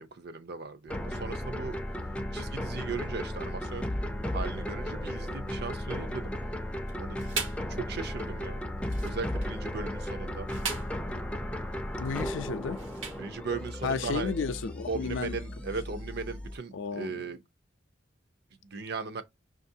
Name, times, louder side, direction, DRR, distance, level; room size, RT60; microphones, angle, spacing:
voice 1, 0.0-1.8 2.3-6.3 7.0-7.2 7.7-8.6 9.0-10.5 13.2-14.3 14.9-17.4 18.6-19.2, right 4 dB, 55° right, 0.6 m, -37 dB
sound 1, 0.9-16.6, left 1 dB, 5° left, 0.4 m, -35 dB
sound 2, 6.9-7.7 8.8-9.6 10.3-11.1 12.0-13.4, right 6 dB, 80° right, 0.9 m, -38 dB
voice 2, 12.0-12.8 13.8-15.4 16.7-17.2, left 5 dB, 75° left, 0.5 m, -33 dB
5.9 x 2.5 x 2.7 m
head